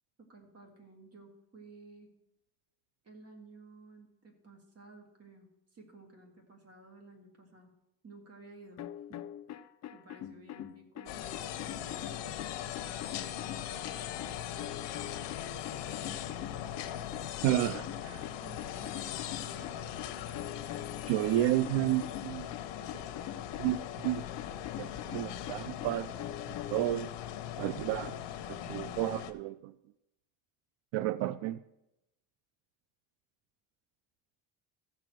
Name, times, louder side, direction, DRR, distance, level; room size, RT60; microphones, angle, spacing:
voice 1, 0.2-2.1 3.0-7.7 8.0-8.8 9.1-9.2 9.9-12.1 12.6-14.8 15.7-16.4 17.2-20.6, right 2 dB, 35° right, 3 dB, 2.1 m, -55 dB
sound 1, 8.8-26.9, left 11 dB, 40° left, 0.5 m, -45 dB
sound 2, 11.1-29.3, left 11 dB, 75° left, 0.9 m, -40 dB
voice 2, 17.4-17.8 21.1-22.5 23.6-24.2 24.8-26.1 26.5-27.1 27.6-28.1 28.5-29.7 30.9-31.6, right 14 dB, 90° right, 15 dB, 0.5 m, -31 dB
14.0 x 4.8 x 7.7 m, 0.89 s
cardioid pair, 150°, 43 cm